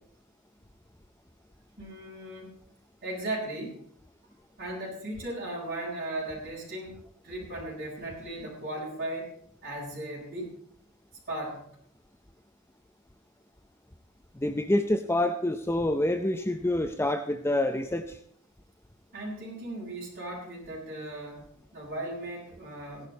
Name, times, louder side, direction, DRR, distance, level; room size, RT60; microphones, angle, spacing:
voice 1, 1.8-2.5 3.0-3.8 4.6-9.3 9.6-10.5 11.3-11.7 19.1-23.1, right 1 dB, 40° right, -6 dB, 7.1 m, -37 dB
voice 2, 14.4-18.2, left 1 dB, 10° left, 7 dB, 0.6 m, -27 dB
16.5 x 11.5 x 4.1 m, 0.66 s
head